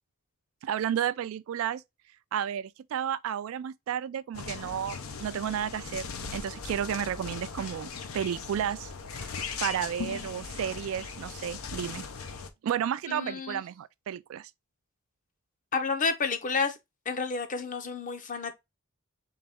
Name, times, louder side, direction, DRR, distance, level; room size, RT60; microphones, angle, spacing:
voice 1, 0.6-1.8 2.3-9.3 9.6-12.1 12.6-14.5, right 9 dB, 75° right, 0.3 m, -32 dB
sound 1, 4.3-12.5, left 5 dB, 90° left, 0.6 m, -39 dB
voice 2, 13.1-13.6 15.7-16.8 17.1-18.5, left 4 dB, 40° left, 0.7 m, -30 dB
3.9 x 3.1 x 3.4 m
head